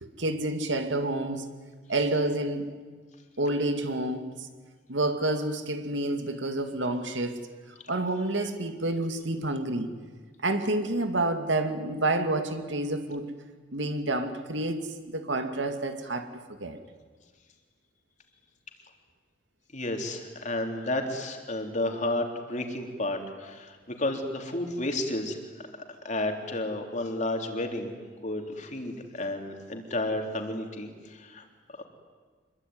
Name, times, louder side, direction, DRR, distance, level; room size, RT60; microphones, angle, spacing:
voice 1, 0.0-1.5 1.9-2.8 3.4-4.5 4.9-7.5 7.9-9.9 10.4-13.3 13.7-16.8, right 2 dB, 90° right, 2.3 m, -29 dB
voice 2, 19.7-25.7 26.0-27.9 28.2-31.9, left 1 dB, 40° left, 3.6 m, -32 dB
26.0 x 22.5 x 9.6 m
head